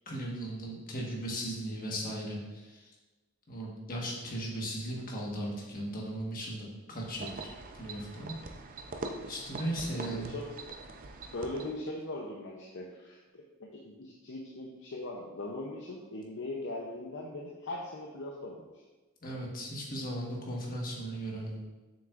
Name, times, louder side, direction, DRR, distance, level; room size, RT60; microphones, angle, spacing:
voice 1, 0.1-2.8 3.5-7.4 7.8-8.4 9.3-10.3 19.2-21.6, right 1 dB, 40° left, -2 dB, 1.4 m, -37 dB
sound 1, 7.0-11.9, right 3 dB, 40° right, 0.5 m, -43 dB
voice 2, 9.8-10.5 11.3-18.8, left 1 dB, 60° left, -2 dB, 0.7 m, -40 dB
7.2 x 6.0 x 2.5 m, 1.2 s
head